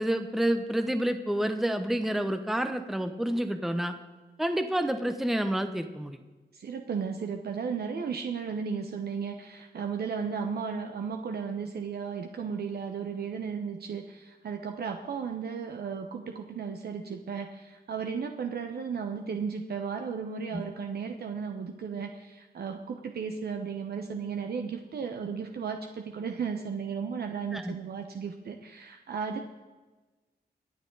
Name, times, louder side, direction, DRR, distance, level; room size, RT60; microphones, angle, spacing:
voice 1, 0.0-3.9 4.4-6.2 20.5-20.6 27.5-27.7, right 1 dB, ahead, 8 dB, 0.8 m, -29 dB
voice 2, 6.5-29.4, right 6 dB, 70° right, 5 dB, 1.0 m, -35 dB
23.5 x 8.7 x 4.0 m, 1.2 s
wide cardioid pair, 130°, 17 cm